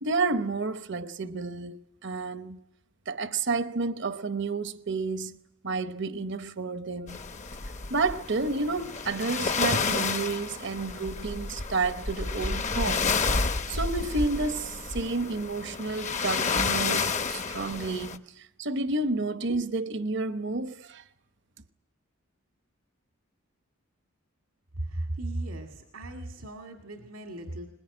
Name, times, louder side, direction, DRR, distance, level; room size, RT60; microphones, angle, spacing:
voice 1, 0.0-1.8 2.0-2.6 3.1-5.4 5.6-7.2 7.9-13.2 13.7-21.0, right 3 dB, 55° right, 0.9 m, -30 dB
sound 1, 7.1-18.2, left 4 dB, 35° left, 0.8 m, -30 dB
voice 2, 24.8-27.7, right 1 dB, 85° right, 2.1 m, -36 dB
22.0 x 20.5 x 9.7 m
head